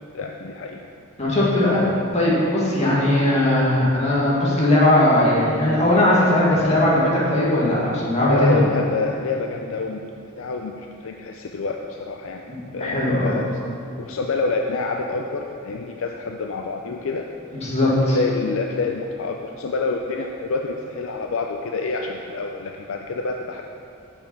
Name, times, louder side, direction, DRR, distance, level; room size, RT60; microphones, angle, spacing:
voice 1, 0.1-0.8 8.2-10.0 10.4-12.4 12.7-13.5 14.0-17.3 18.1-23.6, left 3 dB, 65° left, 2 dB, 0.4 m, -27 dB
voice 2, 1.2-8.6 12.5-13.4 17.5-18.2, left 1 dB, 30° left, -6 dB, 1.8 m, -19 dB
6.7 x 5.8 x 5.3 m, 2.6 s
head